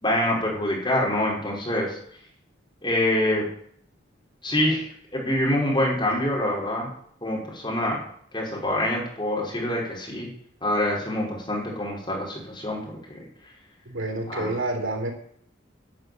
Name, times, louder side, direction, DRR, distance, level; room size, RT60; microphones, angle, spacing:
voice 1, 0.0-2.0 2.8-3.4 4.4-4.8 5.1-6.9 7.2-8.0 8.3-10.3 10.6-12.8 13.1-13.2 14.3-14.5, left 1 dB, 25° left, -3 dB, 4.9 m, -25 dB
voice 2, 13.9-15.1, right 2 dB, 90° right, 3 dB, 3.8 m, -29 dB
12.0 x 7.8 x 9.4 m, 0.63 s
head